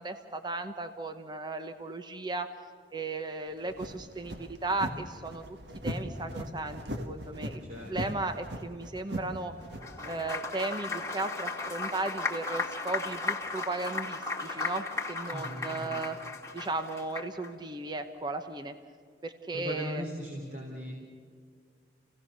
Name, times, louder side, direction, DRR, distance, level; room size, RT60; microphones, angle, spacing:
voice 1, 0.0-2.5 2.9-5.6 5.8-9.5 10.1-16.2 16.5-18.8 19.2-20.0, right 2 dB, 25° right, 8 dB, 0.9 m, -36 dB
sound 1, 3.5-10.1, right 1 dB, 75° right, 1.8 m, -39 dB
voice 2, 7.6-8.1 15.3-16.0 19.5-20.9, left 1 dB, 45° right, -2 dB, 3.7 m, -39 dB
Applause, 9.7-17.5, left 3 dB, 15° left, 2.6 m, -36 dB
28.5 x 17.0 x 6.8 m, 2.1 s
head